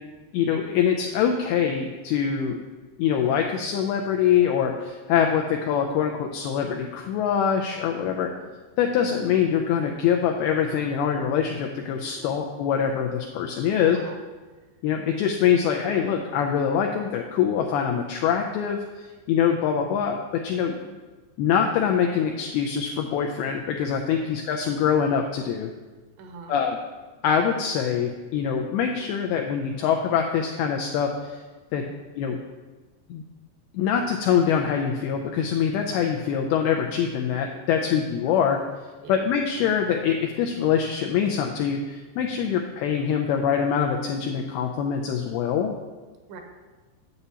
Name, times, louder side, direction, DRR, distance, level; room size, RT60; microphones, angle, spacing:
voice 1, 0.3-2.6 3.0-8.3 8.8-14.0 14.8-20.8 21.4-25.7 26.5-26.8 27.2-31.4 31.7-31.8 32.2-32.4 33.1-33.2 33.7-38.6 39.1-45.7, left 8 dB, 90° left, 2 dB, 2.2 m, -24 dB
voice 2, 8.0-8.5 12.0-12.3 13.7-14.2 20.6-21.0 26.2-26.6 31.7-32.0 38.3-38.5 39.0-39.1 42.3-42.7 46.3-46.4, right 4 dB, 80° right, 3 dB, 2.9 m, -44 dB
9.9 x 8.0 x 2.8 m, 1.3 s
omnidirectional pair, 5.0 m